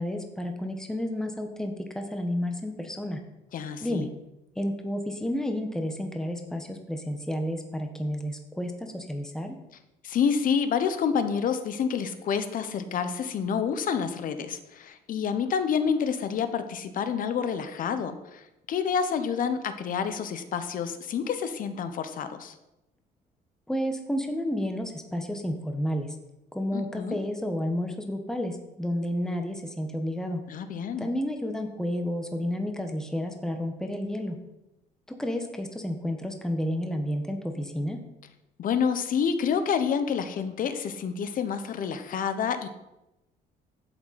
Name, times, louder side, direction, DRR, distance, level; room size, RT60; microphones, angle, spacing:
voice 1, 0.0-3.2 3.8-4.1 4.6-9.6 23.7-26.2 26.5-30.4 31.0-34.4 35.2-38.0, equal, 5° left, 4 dB, 1.3 m, -31 dB
voice 2, 3.5-4.1 10.0-22.5 26.7-27.2 30.5-31.1 38.6-42.7, left 7 dB, 55° left, 10 dB, 1.1 m, -28 dB
11.0 x 8.0 x 4.3 m, 0.93 s
cardioid pair, 110°, 17 cm